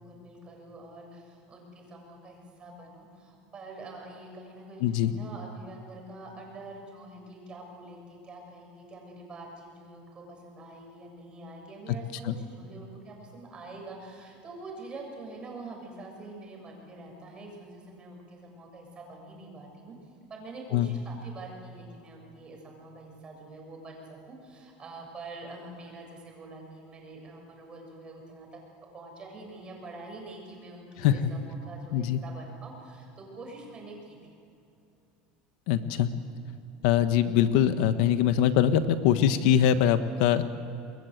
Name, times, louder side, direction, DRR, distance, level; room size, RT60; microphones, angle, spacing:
voice 1, 0.0-19.9 20.3-28.6 28.9-34.2, right 2 dB, 25° right, 0 dB, 7.3 m, -45 dB
voice 2, 4.8-5.1 12.3-12.4 20.7-20.9 31.0-31.1 31.9-32.2 35.7-36.1 36.8-40.4, left 10 dB, 70° left, 10 dB, 1.3 m, -23 dB
29.0 x 22.5 x 8.1 m, 2.8 s
supercardioid pair, 140°, 4 cm